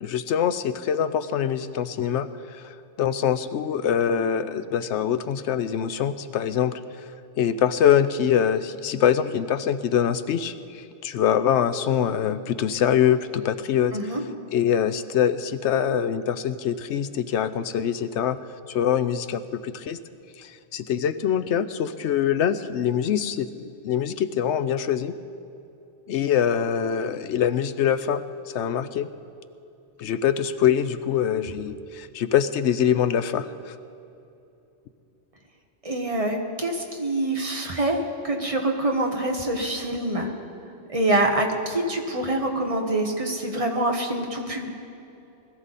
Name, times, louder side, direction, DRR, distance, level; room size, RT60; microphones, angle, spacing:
voice 1, 0.0-6.7 7.4-13.9 14.5-18.4 18.7-20.0 20.4-25.1 26.1-28.2 28.5-29.1 30.0-33.7, left 9 dB, 85° left, 12 dB, 0.9 m, -24 dB
voice 2, 13.9-14.2 35.8-40.3 40.9-44.7, right 1 dB, 30° right, 2 dB, 1.3 m, -25 dB
20.5 x 13.5 x 4.1 m, 2.8 s
omnidirectional pair, 1.2 m